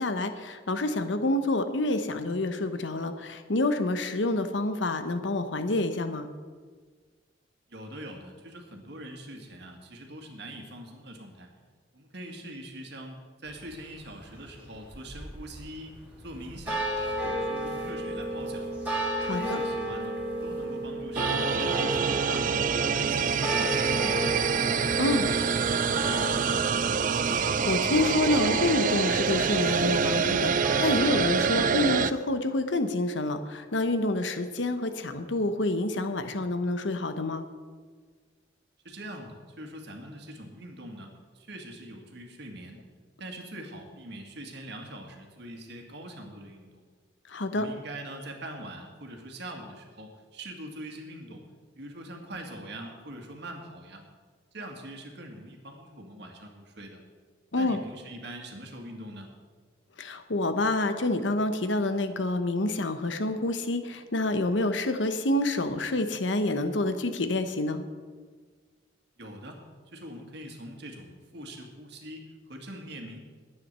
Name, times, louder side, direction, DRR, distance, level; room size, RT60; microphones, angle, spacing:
voice 1, 0.0-6.3 19.2-19.6 25.0-25.3 27.3-37.4 47.3-47.7 57.5-57.8 60.0-67.8, left 2 dB, 80° left, 8 dB, 1.0 m, -28 dB
voice 2, 7.7-11.5 11.9-15.9 16.2-16.9 17.2-18.7 19.3-24.4 25.2-26.7 38.8-42.8 43.2-46.8 47.5-51.4 51.8-54.0 54.5-57.0 57.6-59.3 69.2-69.6 69.9-73.2, right 1 dB, 65° right, 3 dB, 2.0 m, -43 dB
sound 1, 13.5-31.7, equal, 10° right, 3.2 m, -33 dB
sound 2, 21.1-32.1, right 6 dB, 45° right, 0.4 m, -26 dB
11.0 x 9.3 x 6.7 m, 1.5 s
head